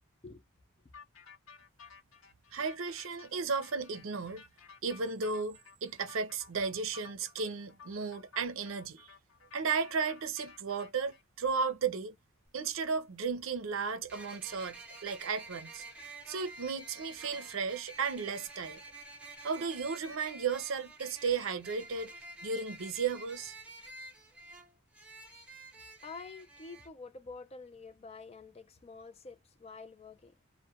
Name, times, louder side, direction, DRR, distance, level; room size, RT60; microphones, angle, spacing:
sound 1, 0.9-11.2, left 6 dB, 70° left, 0.9 m, -55 dB
voice 1, 2.5-4.4 4.8-9.1 9.5-12.1 12.5-15.8 16.3-18.8 19.4-22.1 22.4-23.5, right 5 dB, 70° right, 0.5 m, -34 dB
sound 2, 12.5-12.6 14.1-26.9, right 2 dB, 5° right, 0.6 m, -49 dB
voice 2, 26.0-30.4, left 4 dB, 30° left, 0.4 m, -48 dB
2.2 x 2.2 x 2.7 m
head